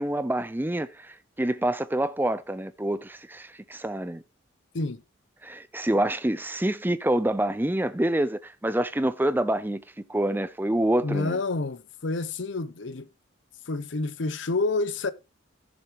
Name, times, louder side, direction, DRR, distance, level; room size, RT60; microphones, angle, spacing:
voice 1, 0.0-4.2 5.4-9.8 10.1-11.4, right 1 dB, 10° right, 0.5 m, -27 dB
voice 2, 11.0-13.1 13.7-15.1, left 3 dB, 65° left, 0.7 m, -28 dB
15.0 x 7.0 x 3.1 m
head